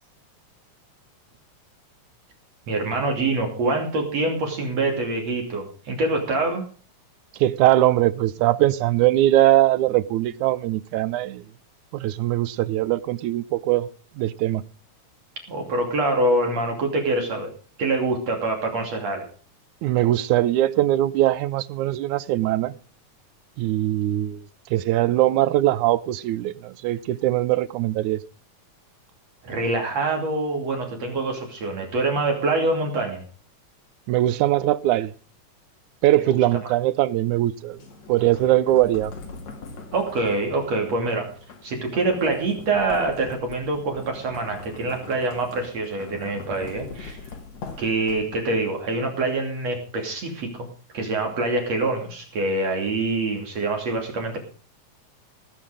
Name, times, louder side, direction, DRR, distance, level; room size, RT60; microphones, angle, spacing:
voice 1, 2.7-6.6 15.5-17.5 17.8-19.3 29.4-33.2 36.2-36.4 39.9-41.3 41.6-47.2 47.8-50.7 50.9-54.4, right 2 dB, 60° right, 3.9 m, -25 dB
voice 2, 7.4-11.4 11.9-13.9 14.2-14.6 19.8-22.7 23.6-24.4 24.7-28.2 34.1-35.1 36.0-37.8 38.1-39.1, right 14 dB, 80° right, 2.2 m, -21 dB
sound 1, 37.7-48.7, left 4 dB, 60° left, 3.7 m, -41 dB
18.0 x 9.3 x 5.0 m
omnidirectional pair, 3.4 m